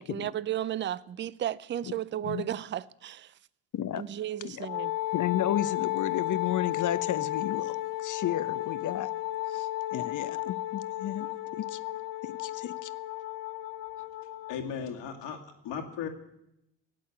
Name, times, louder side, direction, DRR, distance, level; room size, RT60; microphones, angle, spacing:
voice 1, 0.0-3.3 4.0-4.9, right 11 dB, 25° right, 0.5 m, -34 dB
Wind instrument woodwind instrument, 4.6-14.6, left 17 dB, 75° left, 0.9 m, -33 dB
voice 2, 5.1-9.1 9.5-11.3 11.5-11.8 12.2-12.9, left 11 dB, 40° left, 1.0 m, -33 dB
voice 3, 14.5-16.1, left 7 dB, 60° left, 2.4 m, -36 dB
16.5 x 8.4 x 9.3 m
hypercardioid pair, 55°, 49 cm